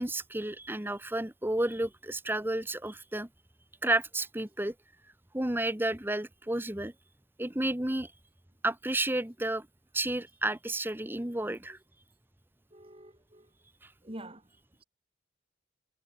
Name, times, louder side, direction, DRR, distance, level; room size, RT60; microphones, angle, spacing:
voice 1, 0.0-3.3 3.8-4.7 5.3-6.9 7.4-8.1 8.6-9.7 9.9-11.8 13.8-13.9, right 1 dB, 10° right, 1.0 m, -31 dB
voice 2, 12.7-13.5 14.0-14.5, right 1 dB, 30° right, 4.6 m, -46 dB
head